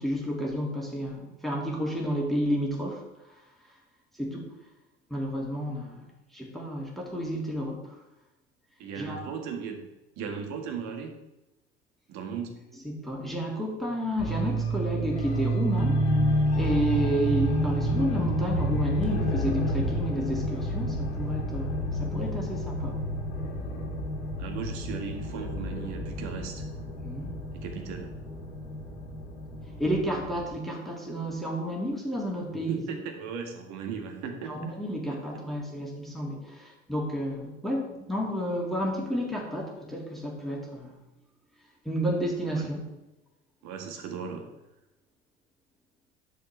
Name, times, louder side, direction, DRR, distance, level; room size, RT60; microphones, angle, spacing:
voice 1, 0.0-3.0 4.2-4.5 5.1-6.1 6.3-8.0 9.0-9.2 12.8-16.0 16.6-23.0 27.0-27.3 29.7-32.8 34.5-41.0 41.9-42.8, equal, ahead, -2 dB, 2.1 m, -31 dB
voice 2, 8.8-11.2 12.1-12.6 24.4-26.6 27.5-28.2 32.5-34.7 42.5-42.7 43.6-44.5, right 6 dB, 55° right, 4 dB, 1.7 m, -37 dB
sound 1, 14.2-30.5, right 1 dB, 85° left, 2.2 m, -29 dB
10.5 x 6.8 x 3.3 m, 0.96 s
hypercardioid pair, 70°, 33 cm